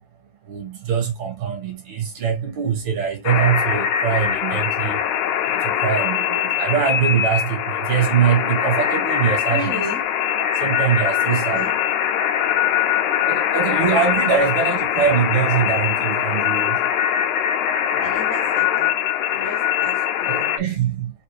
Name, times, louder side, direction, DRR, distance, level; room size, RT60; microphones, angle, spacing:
voice 1, 0.5-5.0 5.5-9.8 10.4-11.7 13.3-16.7 20.2-21.1, right 8 dB, 65° right, 2.9 m, -23 dB
sound 1, 3.3-20.6, left 10 dB, 80° left, 2.0 m, -22 dB
voice 2, 9.5-10.0 11.3-11.7 14.1-14.3 18.0-18.9 19.3-20.9, left 1 dB, 50° left, 0.9 m, -34 dB
5.5 x 2.7 x 3.2 m
omnidirectional pair, 3.4 m